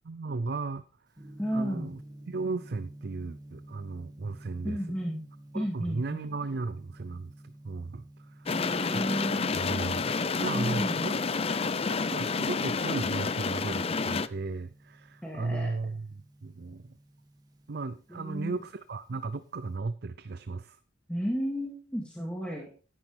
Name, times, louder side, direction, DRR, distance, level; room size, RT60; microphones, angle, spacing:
voice 1, 0.1-0.8 1.5-2.0 2.3-4.8 5.5-11.2 11.6-16.1 16.4-16.9 17.7-20.8 22.5-22.6, right 3 dB, 55° right, 14 dB, 0.5 m, -36 dB
Gong, 1.1-19.7, right 1 dB, 20° right, 2.1 m, -52 dB
voice 2, 1.4-1.9 4.6-5.2 5.5-6.3 8.5-9.7 10.5-11.0 15.2-15.7 18.1-18.6 21.1-22.7, equal, 5° left, -2 dB, 2.3 m, -33 dB
sound 1, 8.5-14.3, left 4 dB, 30° left, 0.5 m, -29 dB
13.0 x 10.0 x 3.4 m, 0.35 s
head